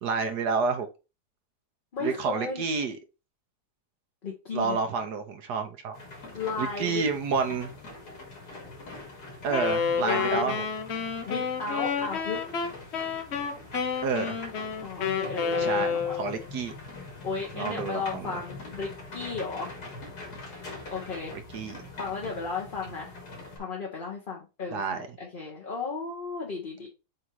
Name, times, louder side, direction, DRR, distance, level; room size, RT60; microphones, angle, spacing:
voice 1, 0.0-0.9 2.0-3.0 4.5-6.0 6.6-7.7 9.4-10.7 14.0-14.4 15.6-16.7 17.5-18.4 21.3-21.8 24.7-25.1, right 5 dB, 80° right, 1.4 m, -29 dB
voice 2, 1.9-2.6 4.2-5.1 6.3-7.0 10.0-10.5 11.2-12.4 14.8-16.2 17.2-19.7 20.9-21.3 22.0-23.2 23.6-26.9, left 4 dB, 35° left, 1.1 m, -34 dB
sound 1, 5.9-23.6, left 2 dB, 80° left, 2.7 m, -43 dB
Wind instrument woodwind instrument, 9.5-16.5, left 6 dB, 50° left, 0.9 m, -30 dB
7.6 x 2.8 x 4.6 m
omnidirectional pair, 1.7 m